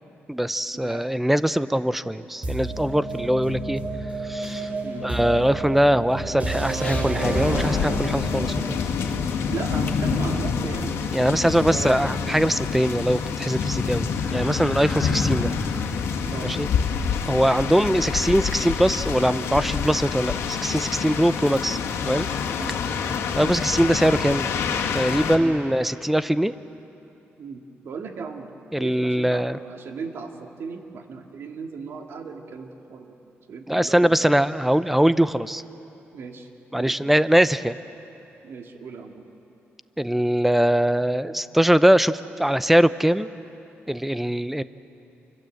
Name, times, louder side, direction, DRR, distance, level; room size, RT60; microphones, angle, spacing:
voice 1, 0.3-3.8 4.2-4.7 5.0-8.8 11.1-15.5 16.4-16.7 17.3-21.8 22.0-22.3 23.4-24.5 24.9-26.5 28.7-29.6 33.7-35.6 36.7-37.8 40.0-43.3 43.9-44.6, equal, 5° right, 14 dB, 0.6 m, -22 dB
sound 1, 2.4-10.3, right 2 dB, 35° right, 4.0 m, -30 dB
sound 2, 4.9-7.1 7.5-7.6 7.9-8.2 8.6-10.0 10.3-10.4 10.8-15.9, left 3 dB, 30° left, 2.1 m, -40 dB
sound 3, 7.2-25.4, left 6 dB, 85° left, 2.0 m, -27 dB
voice 2, 9.5-11.0 11.4-12.0 16.3-16.5 22.6-22.8 25.4-25.6 27.4-28.5 28.8-33.2 33.5-34.3 36.1-37.0 38.4-39.3, right 5 dB, 65° right, 3 dB, 2.3 m, -36 dB
27.5 x 25.0 x 7.8 m, 2.9 s
cardioid pair, 125°, 5 cm